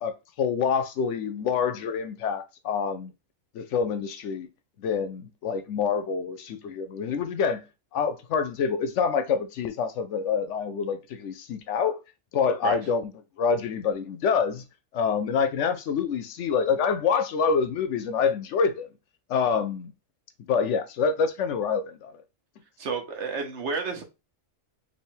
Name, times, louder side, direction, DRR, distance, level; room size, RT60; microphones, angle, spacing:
voice 1, 0.0-3.1 3.5-4.5 4.8-7.6 7.9-12.0 12.3-13.1 13.4-14.6 14.9-18.9 19.3-19.9 20.5-22.1, left 6 dB, 70° left, 0.8 m, -26 dB
voice 2, 22.8-24.0, right 4 dB, 60° right, 1.1 m, -31 dB
3.4 x 2.6 x 4.4 m
omnidirectional pair, 1.4 m